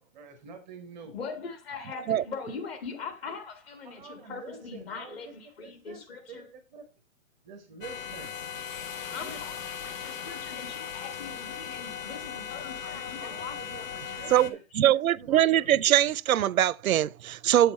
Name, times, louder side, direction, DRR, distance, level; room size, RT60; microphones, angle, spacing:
voice 1, 0.0-1.2 1.7-1.9 3.8-5.3 5.6-6.9 7.4-8.4 9.1-9.4 12.8-16.2, right 4 dB, ahead, 0.4 m, -47 dB
voice 2, 1.1-6.5 9.1-14.2, left 5 dB, 45° left, 2.0 m, -41 dB
sound 1, 7.8-14.5, left 8 dB, 70° left, 1.1 m, -38 dB
voice 3, 14.3-17.7, right 11 dB, 90° right, 0.5 m, -23 dB
7.9 x 6.4 x 4.2 m
hypercardioid pair, 150°, 41 cm